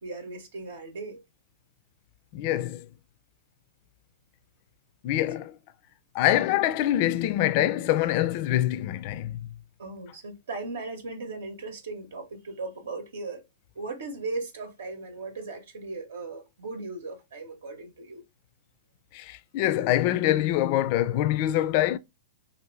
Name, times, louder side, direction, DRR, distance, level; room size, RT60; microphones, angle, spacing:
voice 1, 0.0-1.2 9.8-13.4 13.7-18.2, right 3 dB, 75° right, 0.9 m, -37 dB
voice 2, 2.3-2.9 5.0-5.5 6.1-9.4 19.1-22.0, left 13 dB, 50° left, 0.3 m, -25 dB
2.7 x 2.6 x 3.1 m
hypercardioid pair, 125°, 0 cm